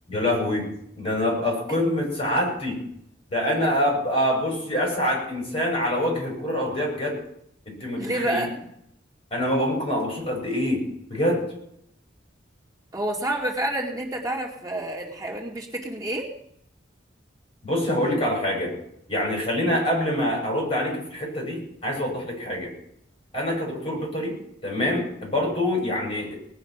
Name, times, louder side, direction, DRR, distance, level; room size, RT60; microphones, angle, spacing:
voice 1, 0.1-0.7 1.0-2.8 3.3-7.2 7.6-8.4 9.3-11.4 17.6-18.7 19.1-22.7 23.3-24.4 24.6-26.3, left 1 dB, 30° left, 0 dB, 6.8 m, -25 dB
voice 2, 8.0-8.5 12.9-16.3, right 1 dB, 20° right, -1 dB, 2.4 m, -28 dB
19.5 x 10.0 x 6.0 m, 0.73 s
head